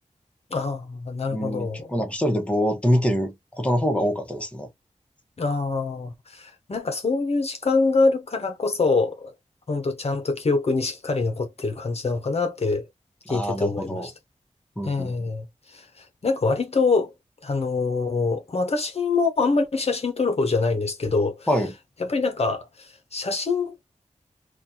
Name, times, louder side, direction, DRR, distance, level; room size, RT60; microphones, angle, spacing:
voice 1, 0.5-1.9 5.4-9.3 9.7-12.9 13.3-14.1 14.8-17.1 17.4-21.5 22.0-23.9, left 3 dB, 55° left, 0.7 m, -25 dB
voice 2, 1.3-4.7 13.3-14.1 14.8-15.1 21.5-21.7, equal, 10° left, 1.0 m, -25 dB
4.2 x 2.3 x 2.7 m
wide cardioid pair, 80°, 13 cm